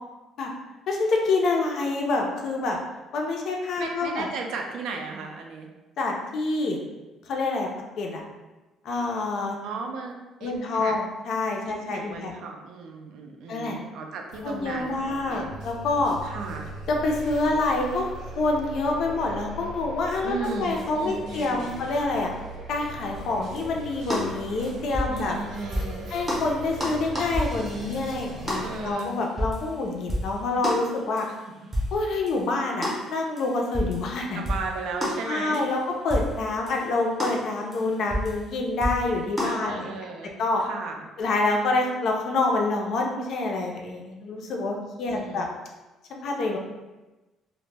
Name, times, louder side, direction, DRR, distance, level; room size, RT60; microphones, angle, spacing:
voice 1, 0.9-2.8 3.1-4.3 6.0-6.8 7.3-7.7 8.0-8.2 8.8-9.6 10.4-12.3 13.5-13.8 14.4-16.2 16.9-18.1 18.3-22.3 22.7-25.4 26.1-31.3 31.9-34.4 35.3-39.9 40.4-40.6 41.2-45.5 46.1-46.6, left 3 dB, 50° left, 1 dB, 0.4 m, -27 dB
voice 2, 3.8-5.7 9.6-10.9 11.6-15.5 16.2-16.7 20.2-21.8 25.1-26.1 28.6-29.1 31.3-31.4 34.3-35.8 39.4-41.1 45.0-45.5, right 4 dB, 70° right, 2 dB, 0.3 m, -36 dB
sound 1, 14.3-28.9, right 1 dB, 90° right, 0.8 m, -40 dB
sound 2, 23.1-23.7 24.1-25.5 25.7-26.0 26.3-29.8 30.1-30.4 30.6-30.9 31.2-31.4 31.7-32.4 32.8-33.1 33.4-34.1 34.5-34.7 35.0-35.7 36.1-36.4 36.7-36.9 37.2-38.5 38.8-39.5, equal, 15° right, 0.6 m, -30 dB
2.0 x 2.0 x 3.2 m, 1.1 s
cardioid pair, 160°, 0 cm